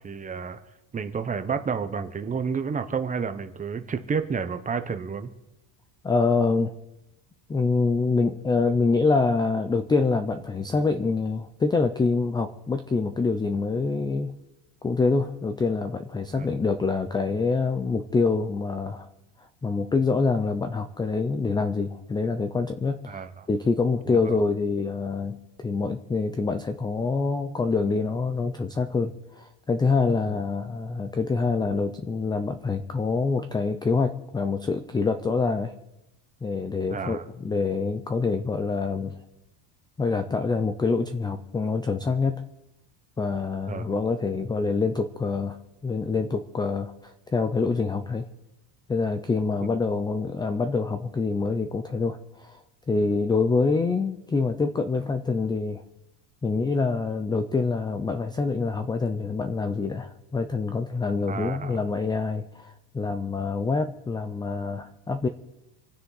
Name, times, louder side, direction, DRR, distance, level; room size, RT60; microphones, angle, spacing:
voice 1, 0.0-0.6 0.9-5.3 16.3-16.5 23.1-23.5 24.1-24.4 30.3-30.4 36.9-37.2 43.7-43.9 49.6-49.8 61.3-61.8, right 6 dB, 15° right, 8 dB, 0.8 m, -30 dB
voice 2, 6.0-6.7 7.5-14.4 14.8-19.1 19.6-23.2 23.5-35.7 36.4-39.1 40.0-42.5 43.2-45.6 45.8-48.3 48.9-52.6 52.9-55.8 56.4-65.3, left 4 dB, 10° left, 9 dB, 0.4 m, -26 dB
27.0 x 9.5 x 4.0 m, 0.94 s
cardioid pair, 155°, 46 cm